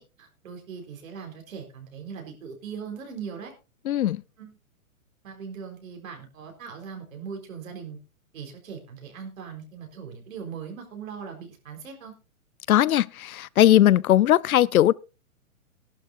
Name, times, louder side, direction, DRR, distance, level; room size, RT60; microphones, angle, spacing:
voice 1, 0.0-3.5 4.4-4.5 5.2-8.0 8.3-12.1, right 6 dB, 70° right, 4.2 m, -40 dB
voice 2, 3.9-4.2 12.7-14.9, left 12 dB, 85° left, 0.6 m, -19 dB
16.5 x 11.5 x 2.6 m
hypercardioid pair, 145°, 42 cm